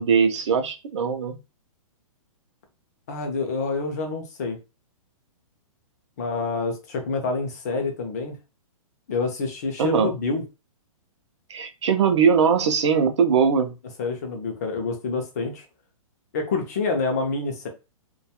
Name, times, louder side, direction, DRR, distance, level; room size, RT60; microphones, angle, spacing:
voice 1, 0.0-1.4 9.8-10.1 11.5-13.7, right 6 dB, 55° right, 8 dB, 0.5 m, -20 dB
voice 2, 3.1-4.6 6.2-8.4 9.1-10.4 14.0-15.6 16.3-17.7, left 4 dB, 30° left, 4 dB, 0.5 m, -27 dB
2.2 x 2.2 x 2.8 m, 0.28 s
hypercardioid pair, 175°, 18 cm